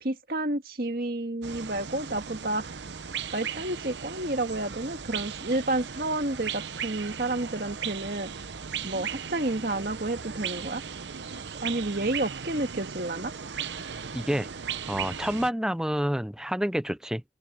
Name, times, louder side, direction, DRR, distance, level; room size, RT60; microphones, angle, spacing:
voice 1, 0.0-2.8 3.3-8.3 8.8-10.8 11.3-13.3, right 2 dB, 55° right, 1.8 m, -30 dB
sound 1, 1.4-15.5, right 7 dB, 85° right, 0.9 m, -37 dB
voice 2, 14.1-14.5 14.8-17.2, equal, 5° right, 0.5 m, -28 dB
open air
head